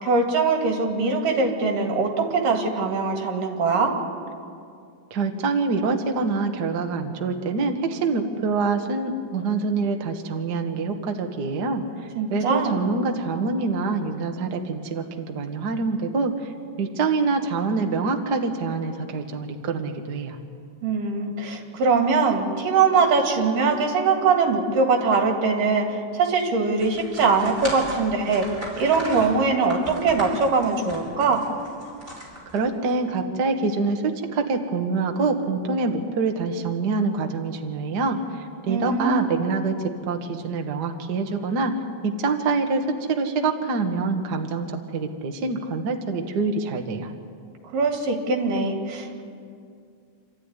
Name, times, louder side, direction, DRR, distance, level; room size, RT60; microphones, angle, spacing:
voice 1, 0.0-3.9 12.2-12.8 20.8-28.4 28.8-31.5 38.7-39.3 47.7-49.2, right 4 dB, 75° right, 2 dB, 4.1 m, -22 dB
voice 2, 5.1-11.8 12.3-16.5 16.8-20.4 32.5-41.7 42.0-47.1, right 4 dB, 45° right, 4 dB, 1.4 m, -25 dB
sound 1, 26.8-32.9, equal, 15° right, 5.4 m, -37 dB
28.0 x 13.5 x 9.8 m, 2.3 s
omnidirectional pair, 3.8 m